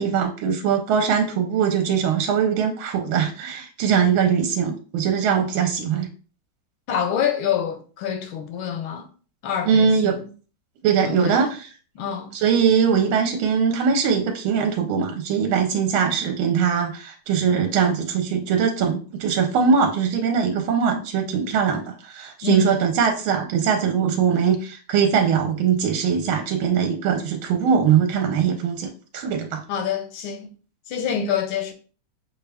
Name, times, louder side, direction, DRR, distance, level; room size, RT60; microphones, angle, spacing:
voice 1, 0.0-6.1 9.6-10.2 10.8-11.7 12.3-29.6, right 7 dB, 80° right, 1.5 m, -21 dB
voice 2, 6.9-9.1 9.4-10.2 11.0-11.4 11.9-12.3 22.4-22.8 29.7-30.5 30.9-31.7, left 7 dB, 90° left, 1.5 m, -26 dB
6.6 x 2.4 x 3.3 m
omnidirectional pair, 2.3 m